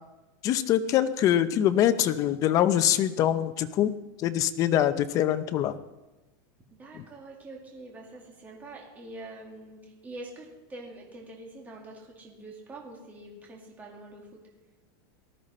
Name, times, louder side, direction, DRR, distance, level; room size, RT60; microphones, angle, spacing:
voice 1, 0.4-3.9 4.2-5.7, left 11 dB, 30° left, 11 dB, 0.7 m, -24 dB
voice 2, 6.8-14.4, right 2 dB, 15° right, -2 dB, 2.4 m, -45 dB
18.5 x 13.0 x 4.3 m, 1.1 s
supercardioid pair, 170°, 12 cm